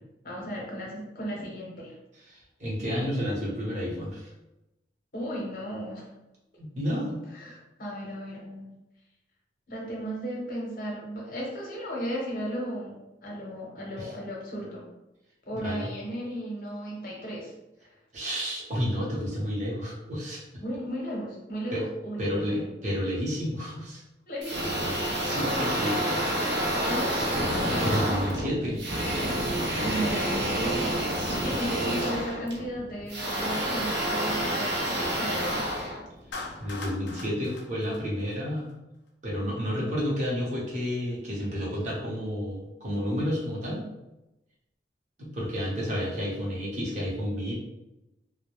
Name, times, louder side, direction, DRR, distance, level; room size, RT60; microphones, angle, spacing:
voice 1, 0.2-1.9 5.1-6.1 7.3-8.7 9.7-13.0 13.2-14.8 15.5-17.5 17.8-17.9 20.6-22.7 24.3-24.9 25.8-26.5 26.8-27.4 29.8-35.6, equal, 50° left, -3 dB, 0.7 m, -35 dB
voice 2, 2.2-4.3 6.6-7.2 14.0-14.1 15.5-15.9 18.1-20.4 21.7-21.8 22.2-24.0 25.2-25.9 27.8-29.0 31.2-31.6 36.6-38.6 39.2-43.8 45.2-47.5, equal, 45° right, -5 dB, 0.7 m, -31 dB
sound 1, 24.4-36.6, right 1 dB, 80° right, 0.5 m, -28 dB
Clapping, 36.3-38.7, left 3 dB, 75° left, 0.4 m, -41 dB
2.1 x 2.0 x 2.9 m, 0.93 s
head